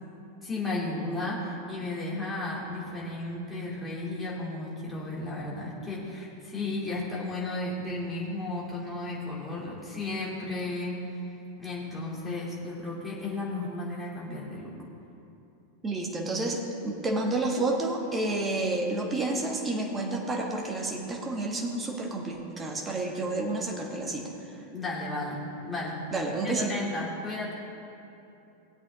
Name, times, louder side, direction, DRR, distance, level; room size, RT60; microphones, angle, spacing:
voice 1, 0.4-11.0 11.6-14.8 24.7-26.0 26.4-27.5, left 2 dB, 5° left, -7 dB, 3.1 m, -34 dB
voice 2, 15.8-24.3 26.1-26.7, right 2 dB, 15° right, 1 dB, 1.7 m, -30 dB
18.0 x 8.2 x 3.8 m, 2.8 s
figure-of-eight pair, 90°, 0 cm